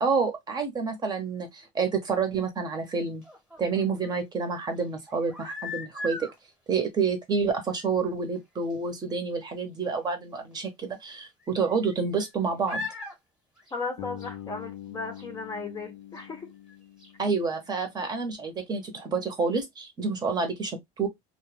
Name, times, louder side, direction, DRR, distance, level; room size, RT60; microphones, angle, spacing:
voice 1, 0.0-3.2 3.6-6.3 6.7-12.9 17.2-20.7 21.0-21.1, right 5 dB, 25° right, 0.8 m, -28 dB
sound 1, 3.2-4.2 5.1-6.4 7.3-7.5 7.8-7.9 8.4-8.5 8.7-8.8 10.5-10.6 11.4-12.3 12.6-13.2 13.6-14.4 15.2-15.3 16.2-16.3 16.7-16.8 17.0-17.1, left 2 dB, 5° right, 1.0 m, -39 dB
voice 2, 13.7-16.5, left 3 dB, 25° left, 0.7 m, -36 dB
Bass guitar, 14.0-17.9, left 11 dB, 85° left, 0.6 m, -44 dB
2.2 x 2.2 x 3.2 m
cardioid pair, 135°, 15 cm